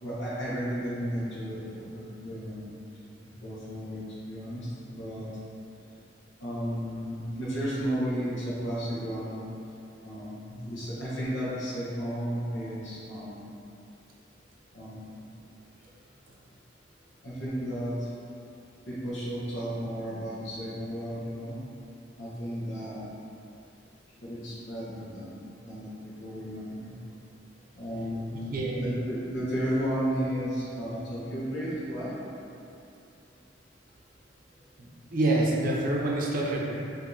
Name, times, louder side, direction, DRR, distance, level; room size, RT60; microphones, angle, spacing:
voice 1, 0.0-2.7 3.4-5.2 6.4-9.3 10.0-13.6 14.7-15.2 17.2-17.9 18.9-21.6 22.2-23.1 24.2-25.4 25.6-26.9 27.8-32.1, equal, 85° left, -10 dB, 0.8 m, -33 dB
voice 2, 34.8-36.7, right 2 dB, 50° right, -3 dB, 0.5 m, -27 dB
4.6 x 2.7 x 2.6 m, 2.7 s
head